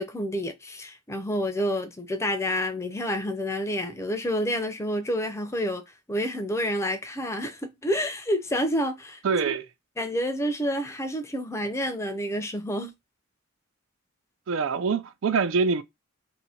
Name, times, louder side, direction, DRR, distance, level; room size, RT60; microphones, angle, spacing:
voice 1, 0.0-5.8 6.1-9.2 10.0-12.9, equal, 15° left, 0.5 m, -29 dB
voice 2, 9.2-9.7 14.5-15.8, right 5 dB, 70° right, 0.4 m, -24 dB
2.7 x 2.6 x 4.2 m
head